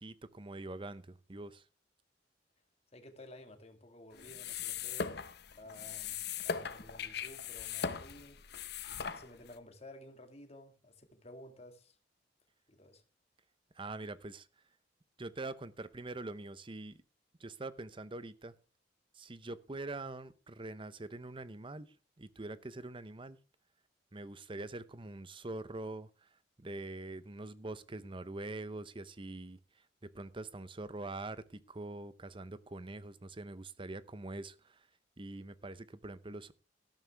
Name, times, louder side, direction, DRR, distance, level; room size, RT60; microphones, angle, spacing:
voice 1, 0.0-1.6 13.8-14.5 15.2-17.0 17.4-18.5 19.1-23.4 24.1-26.3 26.6-29.6 30.0-34.9 35.2-36.5, right 2 dB, 30° right, 0.8 m, -44 dB
voice 2, 2.9-5.1 5.5-6.2 6.4-8.4 8.9-12.0 12.7-13.0, left 1 dB, 35° left, 2.0 m, -54 dB
sound 1, 4.1-9.6, left 6 dB, 65° left, 1.0 m, -40 dB
13.0 x 12.0 x 3.4 m
head